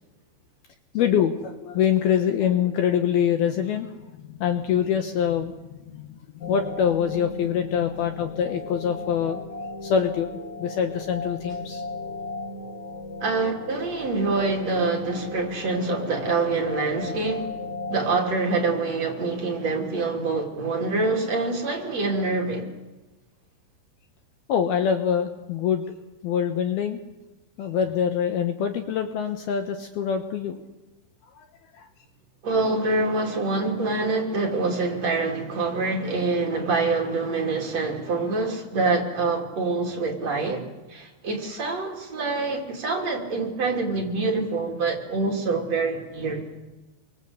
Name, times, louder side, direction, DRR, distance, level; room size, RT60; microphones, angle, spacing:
voice 1, 0.9-9.4 9.8-10.3 10.6-11.8 24.5-25.8 26.2-27.0 27.6-30.6 31.4-31.5 31.7-31.9, left 8 dB, 70° left, 2.6 m, -25 dB
sound 1, 6.4-18.2, left 3 dB, 50° left, 1.3 m, -36 dB
voice 2, 13.2-17.5 17.9-22.7 32.4-40.6 40.9-46.4, right 3 dB, 40° right, 3.5 m, -25 dB
27.0 x 24.0 x 8.1 m
omnidirectional pair, 5.3 m